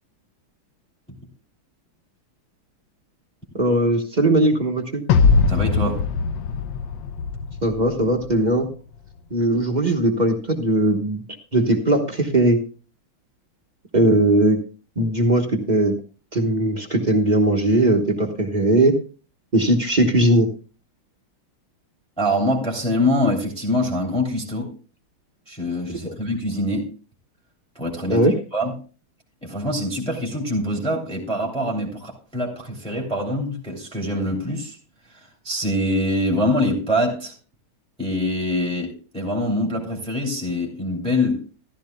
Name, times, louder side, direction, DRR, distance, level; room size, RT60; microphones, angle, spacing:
voice 1, 3.5-5.0 7.6-8.7 9.3-11.2 11.5-12.6 13.9-14.6 15.0-15.9 16.3-18.9 19.5-20.5 26.0-26.1 28.1-28.3, right 1 dB, 30° right, 3 dB, 0.9 m, -19 dB
sound 1, 5.1-8.4, left 5 dB, 70° left, 1.4 m, -21 dB
voice 2, 5.5-6.0 22.2-24.7 25.5-26.9 27.7-28.7 29.4-34.8 35.1-37.3 38.0-41.4, left 1 dB, ahead, -1 dB, 2.7 m, -24 dB
14.5 x 13.0 x 2.3 m, 0.36 s
omnidirectional pair, 2.3 m